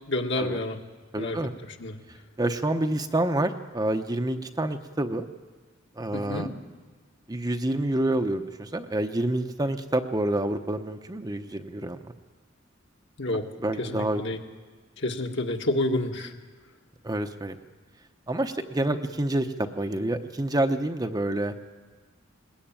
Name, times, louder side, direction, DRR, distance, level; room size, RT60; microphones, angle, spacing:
voice 1, 0.1-0.8 1.2-1.4 1.6-2.0 6.1-6.5 13.2-13.5 13.8-14.4 15.0-16.3, left 2 dB, 60° left, 3 dB, 1.9 m, -29 dB
voice 2, 1.1-1.5 2.4-5.3 6.0-6.5 7.3-12.0 13.6-14.2 17.0-17.6 18.3-19.5 19.8-21.5, right 1 dB, 20° right, 6 dB, 0.9 m, -27 dB
21.0 x 20.5 x 8.9 m, 1.4 s
head